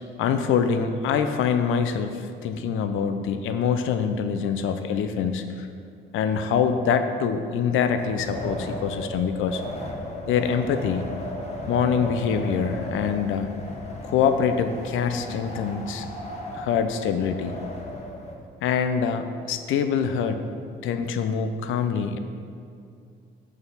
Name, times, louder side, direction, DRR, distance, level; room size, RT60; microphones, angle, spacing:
voice 1, 0.2-5.7 6.1-9.6 10.3-11.0 11.7-13.5 14.0-16.1 16.5-17.6 18.6-20.5 20.8-22.2, left 7 dB, 85° left, 8 dB, 0.6 m, -25 dB
Wind, 8.0-18.3, left 1 dB, 35° left, 1.6 m, -35 dB
7.1 x 6.6 x 5.5 m, 2.3 s
cardioid pair, 90°, 20 cm